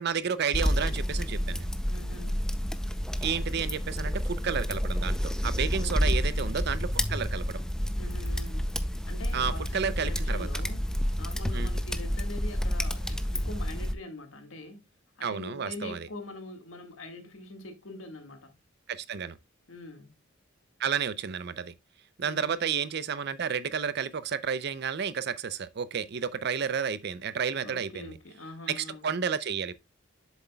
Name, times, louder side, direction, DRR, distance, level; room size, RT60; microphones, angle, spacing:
voice 1, 0.0-1.7 3.2-7.6 9.3-10.5 11.5-11.7 15.2-16.1 18.9-19.4 20.8-21.7 22.2-28.2 28.7-29.7, right 6 dB, 55° right, 0.5 m, -31 dB
sound 1, 0.5-13.9, equal, 5° left, 0.5 m, -29 dB
voice 2, 1.9-2.4 5.7-6.5 8.0-8.7 9.1-10.9 11.2-14.9 15.2-18.6 19.7-20.2 22.2-22.6 27.6-29.1, left 2 dB, 75° left, 1.8 m, -44 dB
7.7 x 7.1 x 2.3 m
head